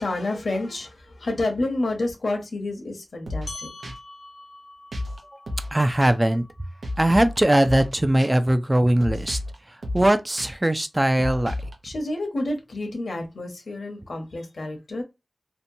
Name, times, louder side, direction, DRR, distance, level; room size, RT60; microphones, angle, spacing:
voice 1, 0.0-3.7 11.8-15.0, left 2 dB, 80° left, 0.8 m, -29 dB
sound 1, 3.3-3.5 3.8-3.9 4.9-5.2 5.5-5.7 6.0-6.1 6.8-7.4 7.6-7.9 8.2-8.3 9.0-9.5 9.8-10.1 10.4-10.5 11.2-11.7, left 1 dB, 90° right, 0.6 m, -31 dB
sound 2, 3.5-8.3, left 2 dB, 45° left, 0.6 m, -45 dB
voice 2, 5.7-6.5 7.0-9.4 9.9-11.6, right 1 dB, 20° right, 0.3 m, -20 dB
2.8 x 2.1 x 2.6 m
wide cardioid pair, 65°, 0 cm